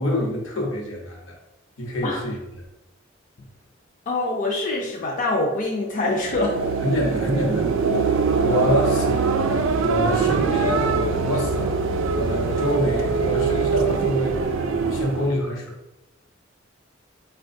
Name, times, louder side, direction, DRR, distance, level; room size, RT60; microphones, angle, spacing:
voice 1, 0.0-1.3 1.8-2.4 6.8-7.7 8.4-9.4 9.8-11.8 12.1-14.4 14.7-15.7, left 1 dB, 80° left, -1 dB, 0.9 m, -26 dB
voice 2, 4.1-6.6, left 2 dB, 40° left, -2 dB, 0.4 m, -24 dB
sound 1, 6.1-15.4, right 4 dB, 75° right, 0.3 m, -23 dB
4.2 x 2.2 x 2.6 m, 0.92 s
head